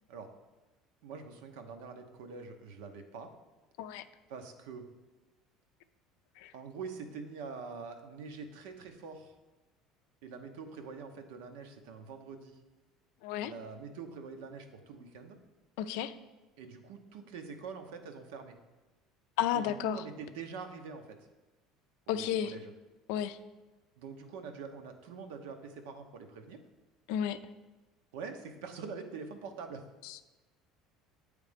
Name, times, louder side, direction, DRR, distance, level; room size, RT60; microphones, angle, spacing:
voice 1, 1.0-3.3 4.3-4.9 6.5-9.3 10.2-12.6 13.4-15.4 16.6-18.6 19.5-21.2 22.1-22.7 24.0-26.6 28.1-29.9, right 5 dB, 90° right, 6 dB, 0.8 m, -45 dB
voice 2, 15.8-16.1 19.4-20.0 22.1-22.5 23.1-23.4 27.1-27.4 30.0-30.4, left 10 dB, 80° left, 11 dB, 0.4 m, -33 dB
8.2 x 3.3 x 5.0 m, 1.1 s
cardioid pair, 135°, 0 cm